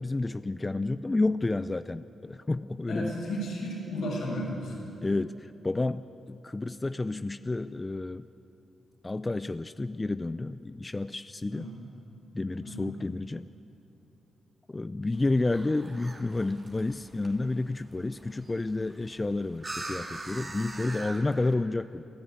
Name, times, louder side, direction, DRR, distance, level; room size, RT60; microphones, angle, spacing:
voice 1, 0.0-3.1 5.0-8.3 9.0-11.7 12.3-13.5 14.7-22.1, left 2 dB, 25° left, 13 dB, 0.4 m, -30 dB
voice 2, 2.9-4.8 11.5-11.8 12.6-12.9, equal, 80° left, -3 dB, 6.6 m, -34 dB
sound 1, 15.1-21.5, right 2 dB, 35° right, 2.7 m, -43 dB
28.0 x 10.5 x 9.0 m, 3.0 s
supercardioid pair, 60°, 0 cm